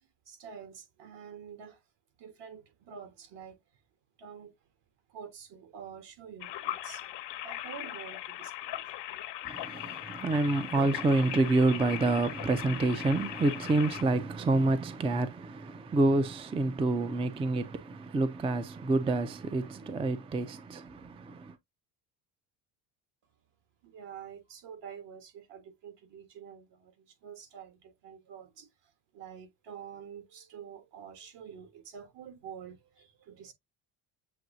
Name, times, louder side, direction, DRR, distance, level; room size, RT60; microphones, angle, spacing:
voice 1, 0.3-1.8 2.2-3.6 4.2-4.5 5.1-7.1 7.4-8.9 23.8-33.5, right 7 dB, 65° right, 1.6 m, -48 dB
sound 1, 6.4-14.0, left 14 dB, 65° left, 0.9 m, -39 dB
voice 2, 9.4-21.5, right 2 dB, 15° right, 0.4 m, -28 dB
7.5 x 2.7 x 2.6 m
cardioid pair, 115°, 45 cm